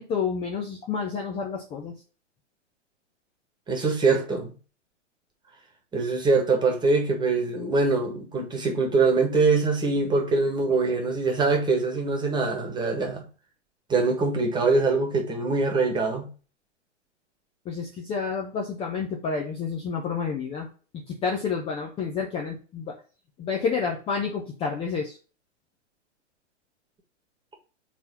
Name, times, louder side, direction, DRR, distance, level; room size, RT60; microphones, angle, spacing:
voice 1, 0.0-1.9 17.7-20.7 21.1-23.0 23.4-25.2, left 5 dB, 15° left, 0.7 m, -29 dB
voice 2, 3.7-4.5 5.9-13.2 13.9-16.3, right 3 dB, 10° right, 1.5 m, -23 dB
4.3 x 4.2 x 5.5 m
figure-of-eight pair, 115°, 36 cm